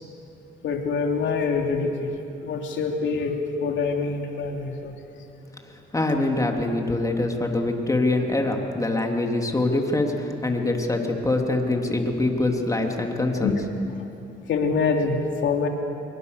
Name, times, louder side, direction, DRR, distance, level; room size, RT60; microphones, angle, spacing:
voice 1, 0.6-2.1 2.4-5.0 13.4-13.5 14.5-15.7, left 4 dB, 70° left, 2 dB, 3.0 m, -25 dB
voice 2, 5.9-13.6, left 2 dB, 15° left, 2 dB, 3.1 m, -24 dB
26.0 x 23.0 x 6.8 m, 2.9 s
cardioid pair, 90°, 20 cm